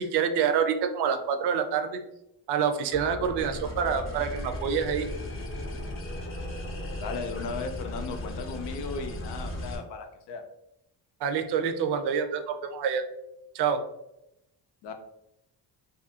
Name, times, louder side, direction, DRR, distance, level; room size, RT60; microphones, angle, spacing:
voice 1, 0.0-2.0 2.5-5.1 11.2-13.0 13.5-13.8, right 7 dB, 80° right, 7 dB, 0.5 m, -27 dB
sound 1, 2.9-9.8, left 1 dB, 30° left, 0.6 m, -36 dB
voice 2, 7.0-10.4 14.8-14.9, left 4 dB, 80° left, 5 dB, 0.6 m, -36 dB
2.6 x 2.4 x 2.7 m, 0.85 s
cardioid pair, 150°, 40 cm